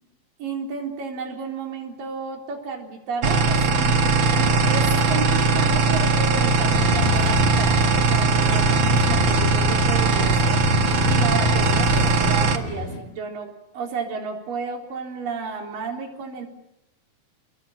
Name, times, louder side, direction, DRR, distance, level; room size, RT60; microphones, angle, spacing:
voice 1, 0.4-4.0 4.3-7.8 8.1-10.6 11.1-16.5, right 4 dB, 65° right, 2 dB, 5.5 m, -32 dB
sound 1, 3.2-12.6, right 3 dB, 45° right, 1.7 m, -19 dB
sound 2, 6.7-13.0, left 3 dB, 80° left, 6.0 m, -30 dB
29.0 x 21.5 x 7.6 m, 0.88 s
omnidirectional pair, 4.3 m